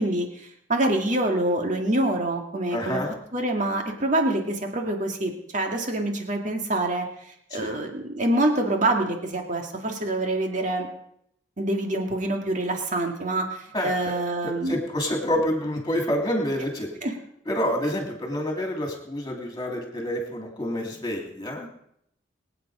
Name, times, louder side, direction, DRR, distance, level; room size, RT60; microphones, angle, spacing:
voice 1, 0.0-7.1 7.5-10.9 11.6-14.8 17.0-17.1, right 1 dB, 40° right, 3 dB, 2.1 m, -26 dB
voice 2, 2.7-3.1 7.5-7.8 13.7-14.1 14.4-16.9 17.5-21.7, equal, 20° left, 1 dB, 3.0 m, -28 dB
23.0 x 9.1 x 5.0 m, 0.75 s
head